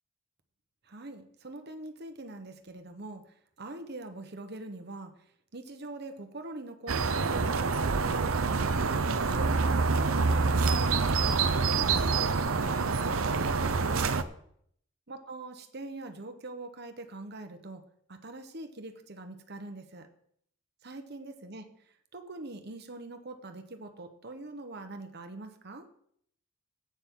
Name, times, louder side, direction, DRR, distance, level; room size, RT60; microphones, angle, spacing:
voice 1, 0.8-3.2 3.6-5.1 5.5-8.9 9.3-11.3 11.7-12.9 13.2-14.1 15.1-17.8 18.1-20.1 20.8-21.6 22.1-25.9, right 2 dB, 50° right, 7 dB, 1.3 m, -43 dB
sound 1, 6.9-14.2, right 4 dB, 75° right, 0.8 m, -26 dB
16.0 x 8.9 x 3.9 m, 0.67 s
head